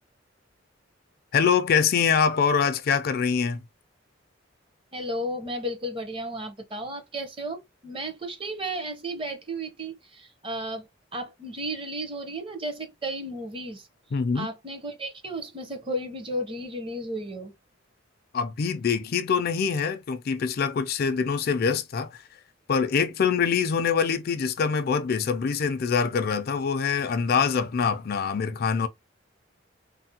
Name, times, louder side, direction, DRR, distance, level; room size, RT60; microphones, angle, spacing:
voice 1, 1.3-3.6 14.1-14.5 18.3-22.2 22.7-28.9, left 6 dB, 50° left, 0.4 m, -24 dB
voice 2, 4.9-13.9 14.3-17.5, right 1 dB, 30° right, 0.8 m, -34 dB
3.3 x 2.1 x 2.8 m
head